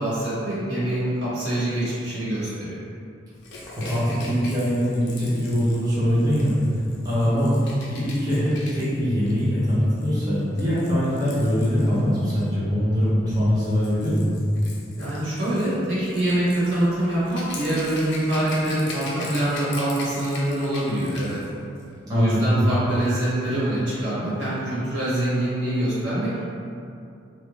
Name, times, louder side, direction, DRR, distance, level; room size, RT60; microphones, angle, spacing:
voice 1, 0.0-2.8 15.0-21.4 22.1-26.4, right 1 dB, 75° right, -10 dB, 1.3 m, -25 dB
Rattle / Rattle (instrument), 3.4-12.4 13.4-21.5 21.8-21.9, left 2 dB, 65° left, 0.5 m, -41 dB
voice 2, 3.9-6.5 7.0-14.3 22.1-22.5, equal, 20° right, -11 dB, 0.7 m, -22 dB
3.3 x 2.5 x 3.0 m, 2.5 s
head